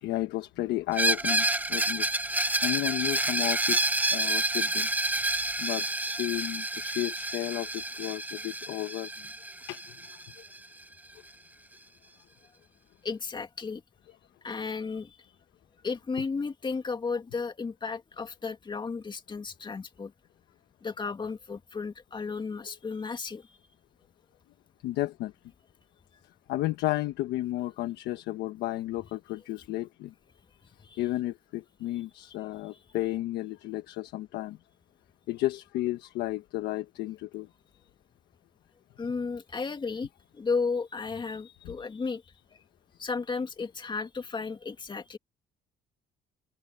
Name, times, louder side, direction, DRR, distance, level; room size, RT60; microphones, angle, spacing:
voice 1, 0.0-2.1 2.6-3.8 4.1-5.0 5.6-9.1 9.7-9.8 24.8-25.3 26.5-30.1 31.0-34.6 35.3-37.5 41.6-41.7, left 16 dB, 85° left, 1.2 m, -32 dB
Screech, 0.9-10.6, right 2 dB, 10° right, 0.8 m, -29 dB
voice 2, 13.0-13.8 14.4-15.2 15.8-20.1 20.8-23.6 30.8-31.0 39.0-40.1 40.3-42.2 43.0-45.2, left 4 dB, 25° left, 2.3 m, -33 dB
cardioid pair, 110°, 17 cm